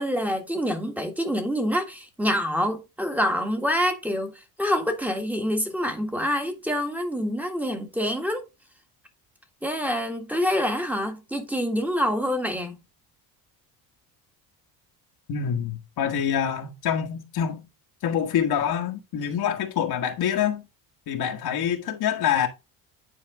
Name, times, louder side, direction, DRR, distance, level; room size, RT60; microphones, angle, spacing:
voice 1, 0.0-4.3 4.6-8.4 9.6-12.7, equal, 5° right, 1.6 m, -26 dB
voice 2, 15.3-17.7 18.0-20.6 21.1-22.5, left 8 dB, 60° left, 1.6 m, -26 dB
10.0 x 4.3 x 3.7 m
cardioid pair, 115°, 42 cm